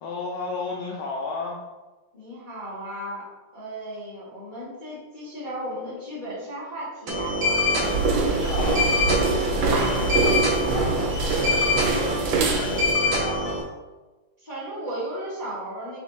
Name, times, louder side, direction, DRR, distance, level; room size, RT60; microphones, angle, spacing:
voice 1, 0.0-1.6 7.5-13.6, left 3 dB, 85° left, -1 dB, 1.5 m, -34 dB
voice 2, 2.1-3.2 3.5-7.8 14.4-16.0, right 1 dB, 25° left, -12 dB, 1.5 m, -35 dB
sound 1, 7.1-13.6, left 1 dB, 50° right, 1.2 m, -25 dB
sound 2, 7.8-12.9, right 3 dB, 90° right, 1.7 m, -24 dB
5.1 x 3.4 x 3.0 m, 1.2 s
omnidirectional pair, 2.3 m